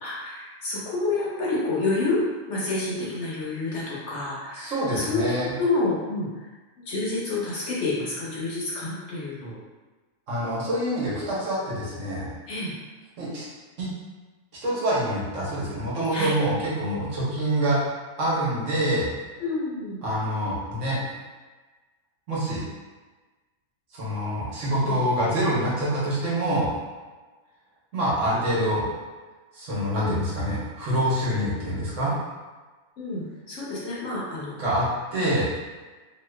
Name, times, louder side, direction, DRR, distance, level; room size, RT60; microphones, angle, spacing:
voice 1, 0.0-2.2 2.5-6.5 6.9-9.6 12.5-12.7 16.1-16.3 19.4-20.0 24.8-25.0 30.0-30.2 33.0-34.6, left 3 dB, 60° left, -6 dB, 1.0 m, -29 dB
voice 2, 4.6-5.5 10.3-12.3 13.2-13.4 13.8-13.9 14.6-19.1 20.0-21.0 22.3-22.6 23.9-26.7 27.9-28.8 29.5-32.1 34.6-35.5, right 1 dB, 60° right, -8 dB, 1.3 m, -26 dB
3.0 x 2.4 x 3.1 m, 1.3 s
omnidirectional pair, 1.5 m